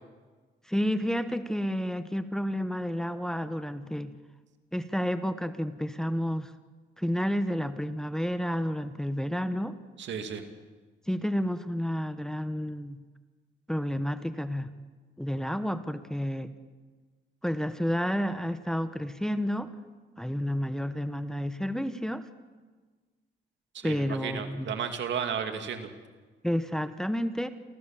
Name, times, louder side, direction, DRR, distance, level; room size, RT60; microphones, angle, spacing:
voice 1, 0.7-4.1 4.7-6.5 7.0-9.8 11.1-13.0 13.7-14.7 15.2-16.5 17.4-19.7 20.2-22.3 23.8-24.8 26.4-27.5, equal, 5° left, 10 dB, 1.1 m, -30 dB
voice 2, 10.0-10.5 23.7-25.9, right 7 dB, 65° right, 6 dB, 2.4 m, -33 dB
28.5 x 14.5 x 7.3 m, 1.4 s
cardioid pair, 90°, 20 cm